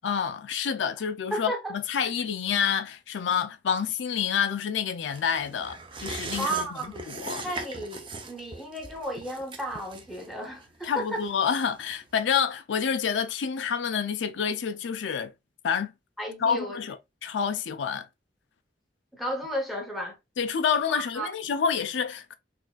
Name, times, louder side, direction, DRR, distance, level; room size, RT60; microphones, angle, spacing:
voice 1, 0.0-6.7 7.1-7.4 10.8-15.3 15.6-15.9 16.4-18.1 20.4-22.3, left 7 dB, 85° left, 0.4 m, -28 dB
voice 2, 1.3-1.7 6.4-7.1 7.4-11.2 16.2-16.8 19.1-20.2 20.9-21.3, right 1 dB, ahead, 0.8 m, -33 dB
sound 1, 5.1-12.1 12.5-12.6, right 3 dB, 30° right, 0.5 m, -40 dB
4.1 x 2.5 x 2.2 m
head